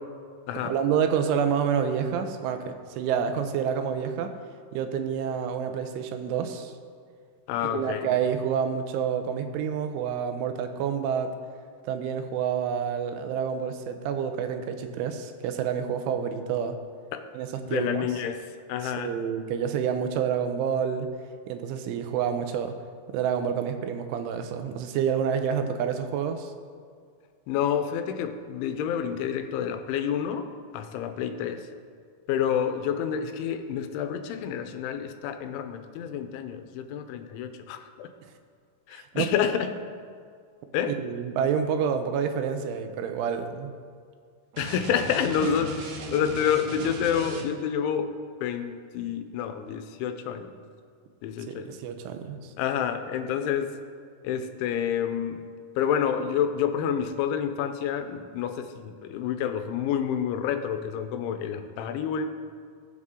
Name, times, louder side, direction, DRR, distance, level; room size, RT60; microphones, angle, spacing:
voice 1, 0.6-4.3 4.7-6.7 7.6-11.3 11.9-16.8 17.3-18.1 18.8-21.1 21.5-22.7 23.1-26.5 38.9-39.3 40.9-43.7 51.5-52.5, right 7 dB, 85° right, 7 dB, 3.3 m, -28 dB
voice 2, 7.5-8.1 17.1-17.3 17.7-19.2 27.5-31.7 32.3-38.1 38.9-39.7 40.7-41.0 44.6-48.1 48.4-50.5 51.2-51.8 52.6-53.8 54.2-55.5 55.8-62.3, left 8 dB, 85° left, 8 dB, 3.1 m, -29 dB
sound 1, 44.5-47.8, right 2 dB, 65° right, 2.4 m, -37 dB
20.0 x 7.9 x 3.7 m, 2.1 s
omnidirectional pair, 5.4 m